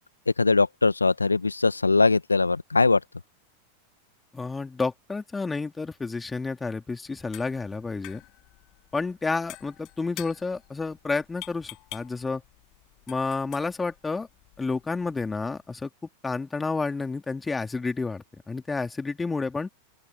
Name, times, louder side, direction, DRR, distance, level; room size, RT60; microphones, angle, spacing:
voice 1, 0.4-3.0, left 3 dB, 80° left, 1.8 m, -21 dB
voice 2, 4.3-8.2 8.9-12.4 13.1-14.3 14.6-15.9 16.2-19.7, left 4 dB, 10° left, 3.3 m, -30 dB
sound 1, 7.0-15.7, left 21 dB, 40° left, 7.8 m, -48 dB
open air
figure-of-eight pair, 90°, 0 cm